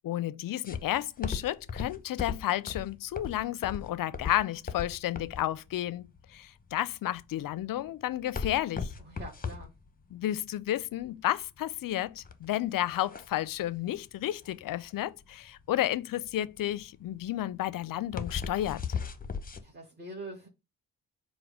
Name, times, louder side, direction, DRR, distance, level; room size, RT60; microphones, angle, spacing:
voice 1, 0.0-8.9 10.1-18.8, left 13 dB, 50° left, 0.5 m, -32 dB
sound 1, 0.6-19.6, left 6 dB, 20° left, 0.7 m, -38 dB
voice 2, 9.0-9.7 19.6-20.5, right 2 dB, 25° right, 1.2 m, -44 dB
4.7 x 2.2 x 4.8 m
hypercardioid pair, 40°, 43 cm